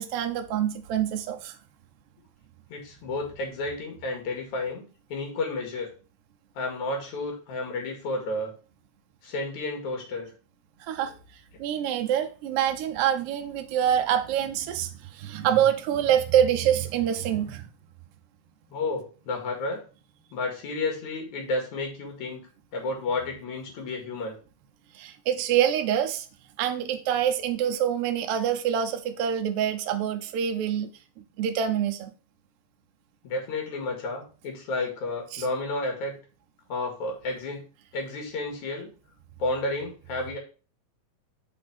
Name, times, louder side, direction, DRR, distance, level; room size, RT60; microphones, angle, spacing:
voice 1, 0.0-1.6 10.9-11.1 11.6-17.7 24.9-26.3 26.6-30.9 31.4-32.1 35.3-35.4, right 9 dB, 75° right, 7 dB, 1.4 m, -26 dB
voice 2, 2.7-4.8 5.1-5.9 6.5-8.5 9.2-10.3 11.0-11.2 18.7-19.8 20.3-22.4 22.7-24.3 33.2-36.2 36.7-37.7 37.9-38.9 39.4-40.4, left 2 dB, 75° left, 1 dB, 3.2 m, -31 dB
6.3 x 3.4 x 5.9 m, 0.36 s
omnidirectional pair, 3.5 m